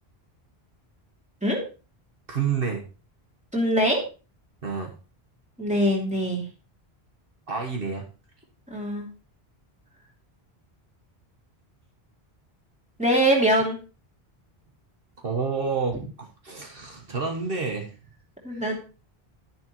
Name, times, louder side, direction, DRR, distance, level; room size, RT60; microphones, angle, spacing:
voice 1, 2.3-2.8 4.6-4.9 7.5-8.0 15.2-18.0 18.5-18.7, right 5 dB, 65° right, 2 dB, 1.5 m, -29 dB
voice 2, 3.5-4.0 5.6-6.4 8.7-9.0 13.0-13.8 18.4-18.8, equal, 5° right, -1 dB, 2.9 m, -23 dB
11.0 x 10.5 x 3.0 m, 0.33 s
omnidirectional pair, 1.0 m